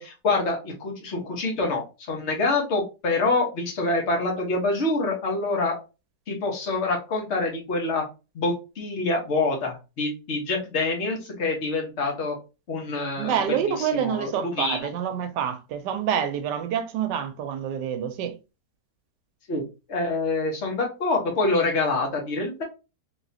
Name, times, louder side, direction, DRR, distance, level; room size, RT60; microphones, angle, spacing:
voice 1, 0.0-5.8 6.3-8.0 8.3-12.4 12.7-14.9 19.5-19.6 19.9-22.6, left 3 dB, 45° left, 1.3 m, -26 dB
voice 2, 13.2-18.4, right 8 dB, 80° right, 1.2 m, -27 dB
3.6 x 3.0 x 2.7 m
omnidirectional pair, 1.8 m